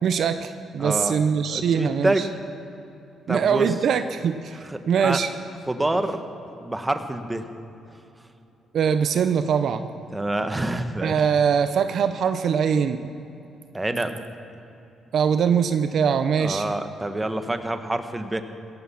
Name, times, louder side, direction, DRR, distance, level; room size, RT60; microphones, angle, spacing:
voice 1, 0.0-2.3 3.3-5.3 8.7-9.9 11.0-13.1 15.1-16.6, right 7 dB, 65° right, 10 dB, 0.6 m, -22 dB
voice 2, 0.8-1.2 1.5-2.2 3.3-3.7 5.0-5.2 5.7-6.2 6.6-7.4 10.1-11.2 13.7-14.1 16.4-18.4, right 1 dB, 15° right, 8 dB, 1.3 m, -26 dB
17.0 x 13.0 x 5.9 m, 2.8 s
cardioid pair, 90°, 0 cm